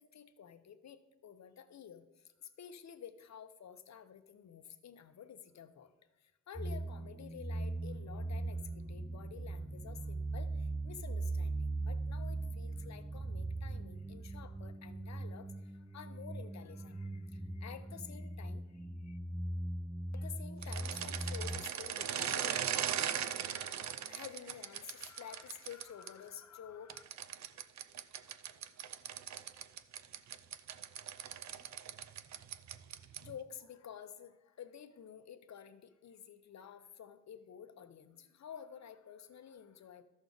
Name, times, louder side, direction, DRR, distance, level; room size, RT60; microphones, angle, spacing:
voice 1, 0.0-5.9 6.2-19.2 20.1-22.6 22.9-27.0 33.2-40.0, left 8 dB, 65° left, 10 dB, 0.7 m, -51 dB
sound 1, 6.5-21.6, right 2 dB, 10° right, 0.3 m, -40 dB
sound 2, 20.6-26.1 26.9-33.4, right 9 dB, 65° right, 0.5 m, -39 dB
13.5 x 6.2 x 3.9 m, 1.1 s
wide cardioid pair, 120°, 30 cm